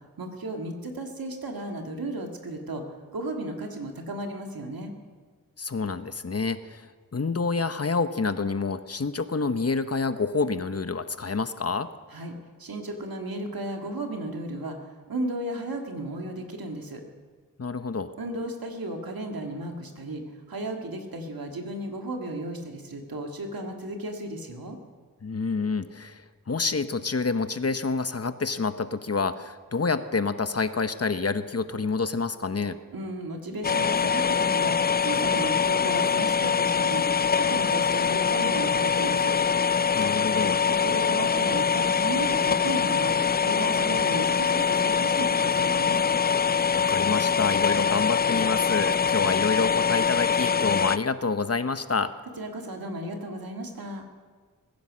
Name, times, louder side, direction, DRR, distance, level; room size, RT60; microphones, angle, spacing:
voice 1, 0.2-4.9 12.1-12.3 12.6-17.0 18.2-24.8 32.9-37.1 37.4-39.4 40.7-43.2 43.4-46.0 52.4-54.0, right 1 dB, 85° right, 3 dB, 2.0 m, -34 dB
voice 2, 5.6-11.9 17.6-18.1 25.2-32.8 39.9-40.6 46.8-52.1, left 4 dB, 45° left, 11 dB, 0.9 m, -28 dB
sound 1, 33.6-51.0, left 6 dB, 30° left, 0.4 m, -24 dB
21.0 x 10.5 x 6.3 m, 1.5 s
cardioid pair, 45°, 35 cm